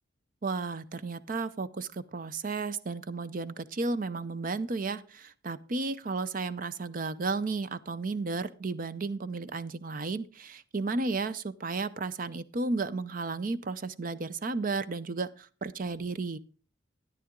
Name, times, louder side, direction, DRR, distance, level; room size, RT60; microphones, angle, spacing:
voice 1, 0.4-16.4, right 3 dB, 45° right, 16 dB, 0.5 m, -33 dB
12.5 x 10.0 x 3.7 m, 0.38 s
head